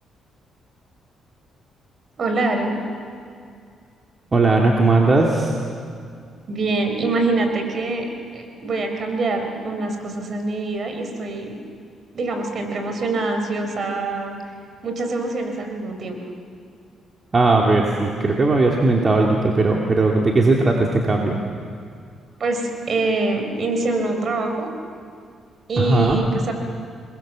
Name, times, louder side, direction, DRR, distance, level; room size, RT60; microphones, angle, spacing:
voice 1, 2.2-2.8 6.5-8.0 8.3-11.5 12.1-14.4 14.8-16.2 22.4-24.7 25.7-26.5, right 2 dB, 50° right, 5 dB, 4.7 m, -24 dB
voice 2, 4.3-5.5 17.3-21.4 25.8-26.2, right 3 dB, 35° right, 0 dB, 2.6 m, -18 dB
28.0 x 22.0 x 7.6 m, 2.3 s
cardioid pair, 90°, 0 cm